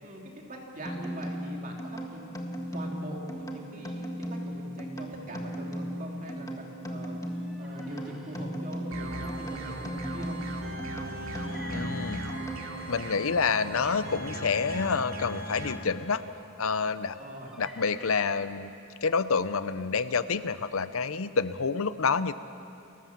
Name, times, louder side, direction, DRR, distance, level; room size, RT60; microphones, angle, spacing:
voice 1, 0.0-7.2 7.6-10.4 17.1-17.5, right 1 dB, 40° right, 0 dB, 3.1 m, -42 dB
sound 1, 0.9-13.0, equal, 15° left, 1.6 m, -37 dB
sound 2, 6.4-6.5 6.8-6.9 7.2-8.4 10.3-10.4 11.1-13.4 14.5-14.8 16.0-16.3 17.0-18.5, equal, ahead, 2.9 m, -49 dB
sound 3, 8.9-15.8, right 1 dB, 80° right, 2.5 m, -38 dB
voice 2, 11.7-12.2 12.9-16.2 16.6-17.2 17.6-18.7 19.0-22.3, left 5 dB, 80° left, 13 dB, 0.7 m, -28 dB
30.0 x 15.0 x 7.4 m, 2.7 s
head